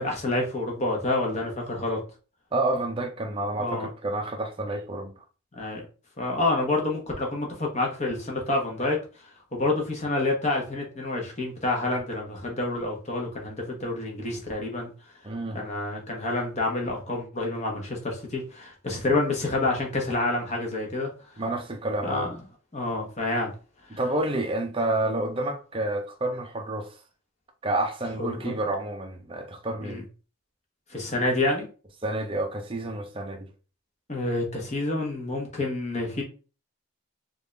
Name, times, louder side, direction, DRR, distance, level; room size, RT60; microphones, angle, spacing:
voice 1, 0.0-2.0 3.6-3.9 5.5-5.8 6.2-15.1 15.5-21.4 22.0-22.4 22.7-23.5 23.9-24.0 28.2-28.6 29.8-30.0 30.9-31.7 34.1-36.2, left 2 dB, 30° left, 1.0 m, -28 dB
voice 2, 2.5-5.1 15.2-15.6 21.4-22.3 23.9-26.9 27.6-30.0 32.0-33.5, right 2 dB, 25° right, 0.5 m, -29 dB
3.5 x 2.5 x 3.3 m
head